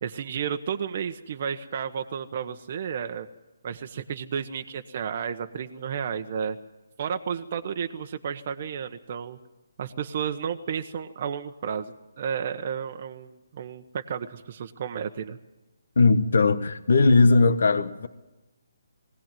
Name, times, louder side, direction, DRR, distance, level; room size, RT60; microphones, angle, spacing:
voice 1, 0.0-3.3 3.6-6.6 7.0-9.4 9.8-15.4, right 7 dB, 45° right, 1.1 m, -32 dB
voice 2, 16.0-18.1, left 3 dB, 70° left, 1.3 m, -19 dB
20.5 x 17.5 x 9.2 m
hypercardioid pair, 150°, 0 cm